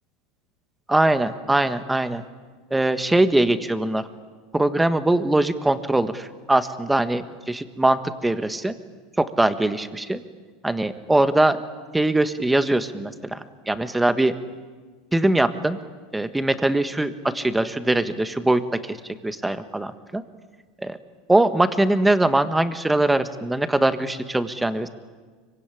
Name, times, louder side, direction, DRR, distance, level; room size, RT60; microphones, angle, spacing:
voice 1, 0.9-2.2 2.7-4.1 4.5-8.7 9.2-10.2 10.6-11.6 11.9-14.3 15.1-15.8 16.1-20.2 20.8-21.0 21.3-24.9, right 2 dB, 5° right, 10 dB, 1.6 m, -22 dB
24.5 x 24.0 x 10.0 m, 1.5 s
supercardioid pair, 130°, 0 cm